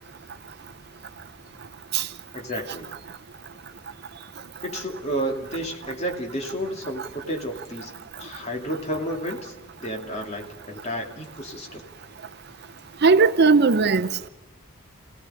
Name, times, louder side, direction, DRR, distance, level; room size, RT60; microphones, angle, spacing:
voice 1, 2.3-2.9 4.6-9.5 9.8-11.8, equal, 30° left, 2.7 m, -31 dB
voice 2, 13.0-14.3, right 4 dB, 50° right, 0.6 m, -18 dB
28.0 x 17.0 x 5.6 m
head